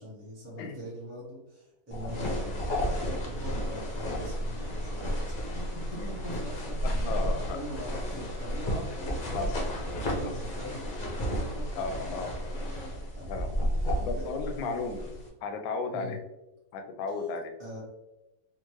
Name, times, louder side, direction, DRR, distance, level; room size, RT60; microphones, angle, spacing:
voice 1, 0.0-2.8 3.2-5.1 5.5-14.7 15.0-15.1 15.9-16.2 17.6-17.8, equal, 15° right, -7 dB, 0.6 m, -42 dB
sound 1, 1.9-15.3, equal, 50° left, 0.5 m, -32 dB
voice 2, 5.9-6.2 6.8-7.4 9.3-9.6 10.2-10.3 11.7-12.4 13.2-13.5 14.0-15.0 15.4-16.2 16.7-17.5, left 4 dB, 70° left, 4 dB, 1.0 m, -35 dB
3.6 x 2.3 x 3.0 m, 0.97 s
omnidirectional pair, 1.8 m